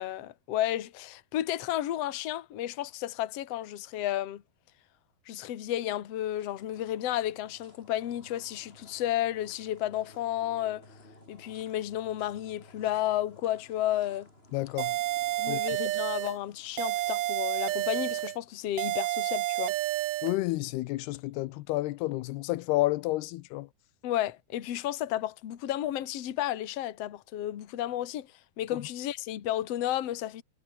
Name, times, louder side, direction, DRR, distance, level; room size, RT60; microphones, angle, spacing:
voice 1, 0.0-4.4 5.3-10.8 11.3-14.3 15.4-19.7 24.0-28.3 28.6-30.4, left 13 dB, 50° left, 2.1 m, -32 dB
sound 1, 5.7-19.0, left 1 dB, 15° left, 6.8 m, -57 dB
voice 2, 14.5-14.9 15.5-15.6 20.2-23.7, left 18 dB, 85° left, 2.7 m, -30 dB
sound 2, 14.8-16.4 16.8-18.4 18.8-20.4, right 16 dB, 80° right, 2.7 m, -30 dB
omnidirectional pair, 4.6 m